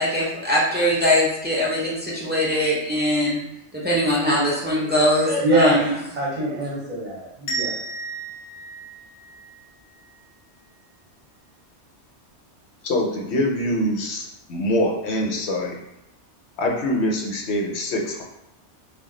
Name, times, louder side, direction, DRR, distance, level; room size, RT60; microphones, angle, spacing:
voice 1, 0.0-3.4 3.7-5.9, equal, 15° right, -6 dB, 0.4 m, -21 dB
voice 2, 5.4-5.9 6.1-7.8, right 1 dB, 40° right, -7 dB, 0.8 m, -23 dB
sound 1, 7.5-10.2, right 4 dB, 40° left, 0.6 m, -33 dB
voice 3, 12.8-15.8 16.6-18.2, left 1 dB, 70° left, 1 dB, 0.8 m, -24 dB
2.3 x 2.2 x 3.7 m, 0.84 s
omnidirectional pair, 1.2 m